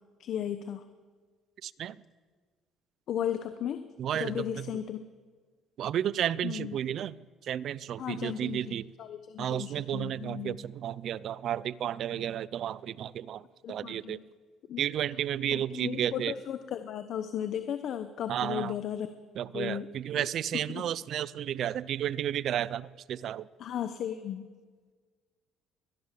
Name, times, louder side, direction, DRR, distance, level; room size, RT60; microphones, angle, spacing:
voice 1, 0.2-0.8 3.1-3.9 4.1-5.0 6.4-6.8 8.0-8.7 9.0-10.6 12.1-12.2 13.6-14.2 14.7-14.8 15.5-19.1 19.5-19.9 20.1-20.2 20.7-20.8 23.6-24.5, left 10 dB, 55° left, 10 dB, 1.0 m, -35 dB
voice 2, 1.6-2.0 4.0-4.8 5.8-7.2 7.4-8.9 9.4-14.2 14.8-16.3 18.3-18.8 19.3-23.5, right 10 dB, 50° right, 20 dB, 0.5 m, -32 dB
22.5 x 19.0 x 7.6 m, 1.5 s
cardioid pair, 145°, 0 cm